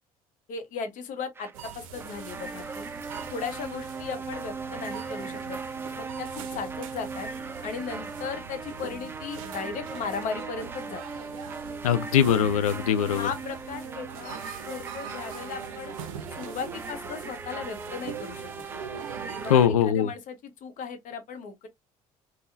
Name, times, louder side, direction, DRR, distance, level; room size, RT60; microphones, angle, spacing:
voice 1, 0.5-2.8 3.3-5.6 6.0-7.3 7.6-11.0 13.1-15.9 16.3-18.5 19.3-21.7, left 5 dB, 45° left, 0.9 m, -36 dB
sound 1, 1.4-19.7, right 4 dB, 15° right, 0.4 m, -39 dB
sound 2, 1.5-19.5, right 8 dB, 70° right, 0.5 m, -42 dB
voice 2, 11.8-13.3 19.5-20.1, left 9 dB, 75° left, 0.4 m, -21 dB
3.5 x 2.2 x 2.6 m
figure-of-eight pair, 55°, 18 cm